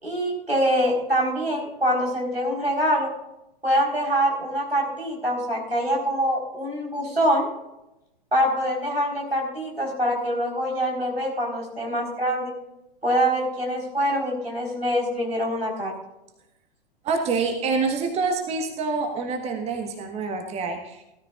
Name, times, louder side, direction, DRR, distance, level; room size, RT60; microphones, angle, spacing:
voice 1, 0.0-3.1 3.6-7.5 8.3-12.5 13.0-15.9, equal, 85° right, -1 dB, 4.3 m, -24 dB
voice 2, 17.0-21.0, right 4 dB, 20° right, 4 dB, 1.4 m, -26 dB
17.0 x 13.0 x 2.4 m, 0.90 s
figure-of-eight pair, 105°, 29 cm